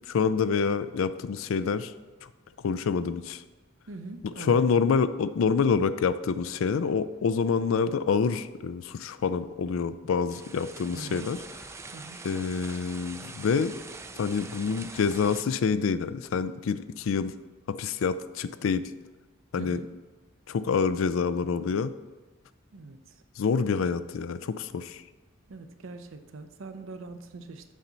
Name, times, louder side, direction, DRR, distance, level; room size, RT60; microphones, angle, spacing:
voice 1, 0.1-1.9 2.6-3.4 4.2-11.4 12.2-13.7 14.2-17.3 17.7-18.9 19.5-19.8 20.5-21.9 23.4-25.0, left 5 dB, 85° left, 13 dB, 0.4 m, -27 dB
voice 2, 3.9-4.8 10.9-11.4 11.9-12.3 19.6-19.9 22.7-23.2 25.5-27.7, right 3 dB, 80° right, 8 dB, 0.6 m, -42 dB
sound 1, 10.3-15.4, right 3 dB, 15° right, 0.3 m, -44 dB
7.3 x 5.5 x 4.0 m, 1.3 s
head